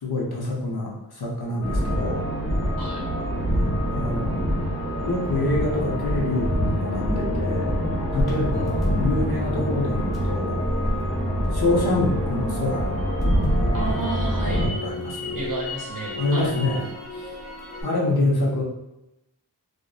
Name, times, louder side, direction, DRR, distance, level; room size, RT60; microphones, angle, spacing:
voice 1, 0.0-2.3 3.9-4.4 5.0-7.7 8.1-10.7 11.5-13.0 14.5-15.4 16.2-16.8 17.1-17.3 17.8-18.6, left 2 dB, 60° left, -3 dB, 0.7 m, -26 dB
sound 1, 1.6-14.7, equal, 35° left, 1.2 m, -25 dB
Crackle, 8.2-12.3 12.7-17.8, left 1 dB, ahead, 1.0 m, -34 dB
sound 2, 12.9-16.8, left 4 dB, 20° left, 0.5 m, -39 dB
voice 2, 13.7-14.7 15.3-16.5, right 2 dB, 50° right, -2 dB, 0.6 m, -32 dB
2.5 x 2.1 x 2.3 m, 0.90 s
wide cardioid pair, 50°, 44 cm